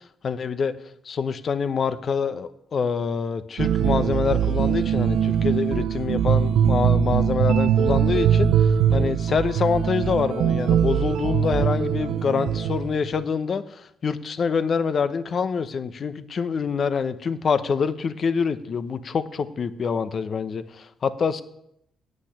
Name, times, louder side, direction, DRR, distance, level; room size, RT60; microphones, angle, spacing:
voice 1, 0.2-0.7 1.0-21.4, left 6 dB, 50° left, 13 dB, 0.8 m, -26 dB
sound 1, 3.6-13.2, right 8 dB, 80° right, 0.5 m, -22 dB
8.6 x 8.1 x 9.1 m, 0.77 s
cardioid pair, 90°, 0 cm